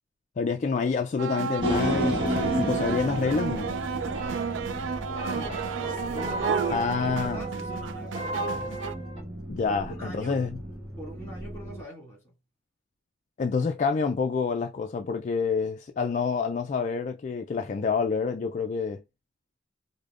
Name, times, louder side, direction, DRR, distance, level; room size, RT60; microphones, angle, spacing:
voice 1, 0.4-3.7 6.7-7.4 9.5-10.6 13.4-19.0, left 5 dB, 40° left, 0.3 m, -28 dB
sound 1, 1.2-9.0, right 6 dB, 80° right, 0.3 m, -33 dB
sound 2, 1.6-11.8, right 1 dB, 5° right, 1.9 m, -39 dB
sound 3, 1.6-9.2, right 1 dB, 30° right, 1.3 m, -32 dB
voice 2, 6.1-8.8 9.6-10.4 11.0-12.2, equal, 15° left, 2.2 m, -42 dB
5.0 x 2.1 x 2.4 m
head